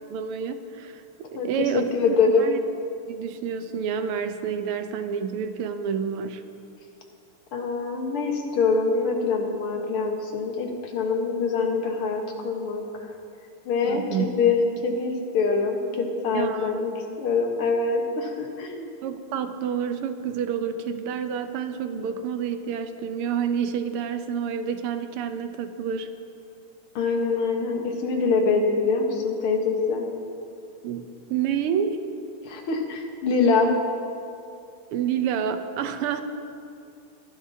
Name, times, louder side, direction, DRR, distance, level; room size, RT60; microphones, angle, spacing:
voice 1, 0.1-2.6 3.1-6.4 13.8-14.3 16.3-16.8 19.0-26.1 30.8-32.0 34.9-36.2, right 7 dB, 85° right, 9 dB, 1.7 m, -29 dB
voice 2, 1.3-2.5 7.5-12.8 13.7-14.0 14.3-14.6 14.8-16.9 17.2-18.9 27.0-30.1 32.4-33.7, left 4 dB, 80° left, 2 dB, 2.2 m, -24 dB
22.0 x 11.5 x 2.7 m, 2.5 s
omnidirectional pair, 2.4 m